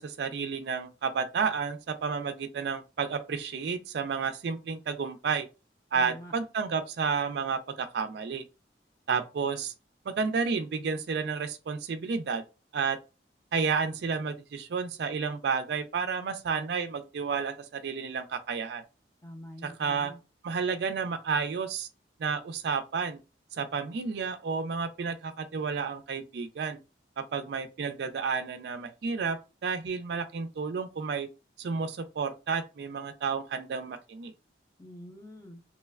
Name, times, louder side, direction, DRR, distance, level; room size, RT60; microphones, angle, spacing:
voice 1, 0.0-5.5 5.9-8.4 9.1-9.7 10.1-12.4 12.7-13.0 13.5-18.8 19.6-20.1 20.4-21.9 22.2-23.2 23.5-26.8 27.2-31.3 31.6-34.3, right 5 dB, 65° right, 0.3 m, -31 dB
voice 2, 5.9-6.3 19.2-20.2 34.8-35.6, equal, 15° left, 0.5 m, -46 dB
3.0 x 2.1 x 2.3 m
head